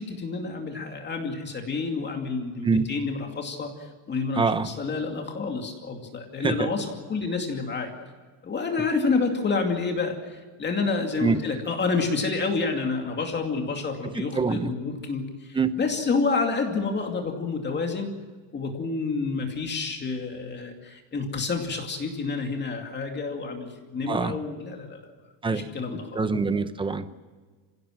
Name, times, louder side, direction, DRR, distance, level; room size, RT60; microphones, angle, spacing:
voice 1, 0.0-7.9 8.4-18.1 18.5-25.1 25.5-26.2, left 4 dB, 25° left, 3 dB, 2.5 m, -29 dB
voice 2, 4.3-4.7 6.4-6.7 11.2-11.4 14.2-14.7 15.5-15.7 24.1-24.3 25.4-25.6 26.1-27.1, right 4 dB, 10° right, 11 dB, 0.8 m, -25 dB
27.0 x 16.5 x 7.6 m, 1.4 s
cardioid pair, 175°, 45 cm